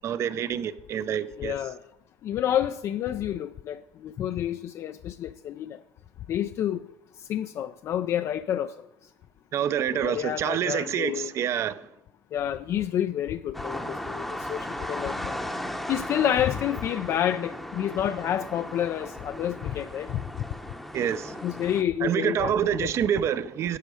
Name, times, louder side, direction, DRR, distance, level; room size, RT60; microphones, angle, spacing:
voice 1, 0.0-1.6 9.5-11.8 20.9-21.4 22.0-23.8, right 9 dB, 45° right, 0.5 m, -27 dB
voice 2, 1.4-1.8 2.2-5.8 6.3-6.8 7.3-8.7 9.9-11.3 12.3-15.4 15.9-20.2 21.4-22.5 22.8-22.9, left 10 dB, 45° left, 0.3 m, -29 dB
sound 1, 13.5-21.8, left 1 dB, ahead, 0.8 m, -36 dB
11.0 x 6.5 x 4.8 m
cardioid pair, 115°, 7 cm